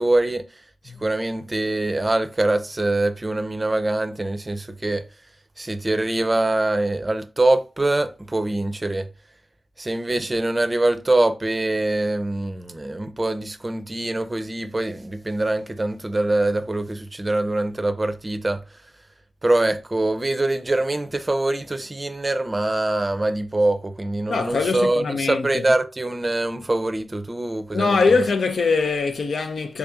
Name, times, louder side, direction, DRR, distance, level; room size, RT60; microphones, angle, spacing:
voice 1, 0.0-5.1 5.6-9.1 9.8-18.6 19.4-28.2, right 2 dB, 25° right, 0.5 m, -24 dB
voice 2, 24.3-25.7 27.7-29.8, left 4 dB, 85° left, 0.5 m, -22 dB
3.5 x 2.7 x 3.5 m
wide cardioid pair, 75°, 0 cm